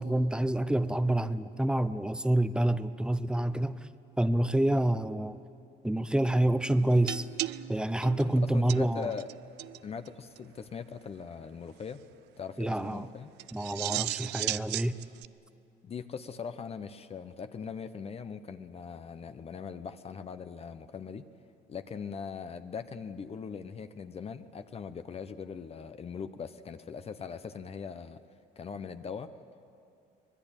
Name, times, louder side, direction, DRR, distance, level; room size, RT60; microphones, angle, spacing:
voice 1, 0.0-3.8 4.2-5.4 5.8-7.3 7.7-9.1 12.6-13.1 13.5-15.0, right 1 dB, 5° right, 13 dB, 0.8 m, -27 dB
sound 1, 7.1-9.3 9.6-9.8 10.1-10.2 10.4-10.5 13.4-15.3, right 17 dB, 90° right, 0.5 m, -36 dB
voice 2, 8.3-9.3 9.8-12.0 12.4-13.3 15.8-21.3 21.7-28.2 28.6-29.3, left 6 dB, 35° left, 10 dB, 0.9 m, -40 dB
25.0 x 20.0 x 9.1 m, 2.6 s
cardioid pair, 110°, 17 cm